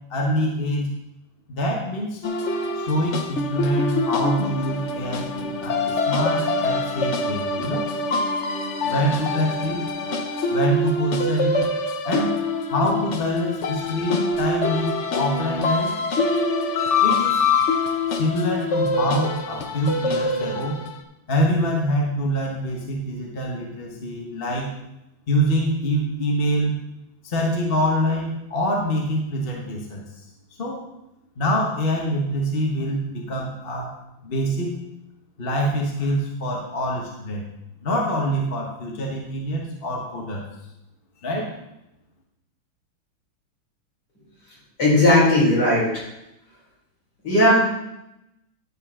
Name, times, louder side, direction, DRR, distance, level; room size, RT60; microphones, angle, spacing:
voice 1, 0.1-0.9 1.5-2.2 2.8-7.9 8.9-9.9 10.5-11.7 12.0-12.4 12.7-15.9 17.0-17.4 18.1-20.8 21.3-24.7 25.3-26.8 27.2-30.0 30.6-30.8 31.4-34.0 34.2-34.8 35.4-37.4 37.8-40.4 41.2-41.5, equal, 35° left, -1 dB, 1.1 m, -25 dB
sound 1, 2.2-21.0, left 3 dB, 70° left, 0.6 m, -25 dB
voice 2, 44.8-46.0 47.2-47.6, left 1 dB, 50° left, -7 dB, 5.1 m, -17 dB
11.0 x 7.8 x 3.7 m, 0.87 s
omnidirectional pair, 2.4 m